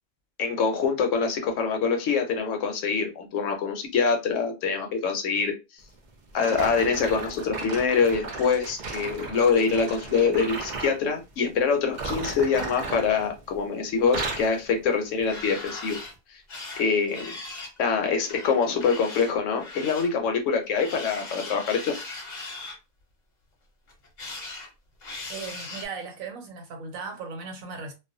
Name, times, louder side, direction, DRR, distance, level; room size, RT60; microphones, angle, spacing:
voice 1, 0.4-5.5 6.3-16.0 16.3-16.4 16.8-17.4 17.8-21.9, left 5 dB, 70° left, 0.9 m, -25 dB
sound 1, 6.4-11.0 11.8-13.6 13.9-14.6 15.2-15.4 16.0-16.1, right 3 dB, 70° right, 0.4 m, -35 dB
sound 2, 15.0-16.1 16.5-17.8 18.3-20.1 20.7-22.7 23.9-24.7 25.0-25.8, left 3 dB, 40° left, 0.7 m, -39 dB
voice 2, 25.3-27.9, right 4 dB, 90° right, 1.1 m, -37 dB
2.3 x 2.2 x 2.5 m
omnidirectional pair, 1.4 m